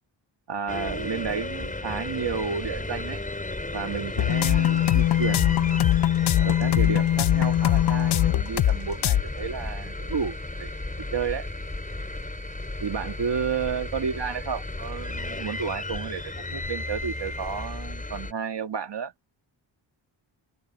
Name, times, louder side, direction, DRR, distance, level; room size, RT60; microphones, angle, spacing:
voice 1, 0.5-3.2 3.7-5.8 6.4-10.7 11.1-11.5 12.8-19.1, right 6 dB, 60° right, 1.8 m, -32 dB
sound 1, 0.7-18.3, left 2 dB, 15° left, 4.4 m, -34 dB
sound 2, 4.2-8.8 9.0-9.2, left 12 dB, 60° left, 0.5 m, -21 dB
wide cardioid pair, 140°, 46 cm